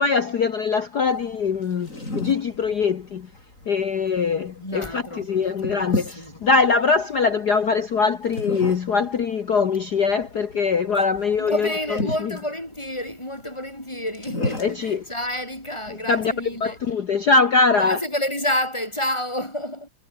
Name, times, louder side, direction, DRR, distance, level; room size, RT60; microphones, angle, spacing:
voice 1, 0.0-1.9 2.1-3.3 3.7-11.7 12.2-12.3 14.6-15.0 16.1-16.3 16.6-18.0, left 4 dB, 65° left, 1.0 m, -22 dB
sound 1, 1.0-16.9, left 1 dB, 25° left, 8.1 m, -35 dB
voice 2, 4.6-6.4 11.4-16.8 17.7-19.9, left 1 dB, 10° left, 6.5 m, -29 dB
omnidirectional pair, 3.3 m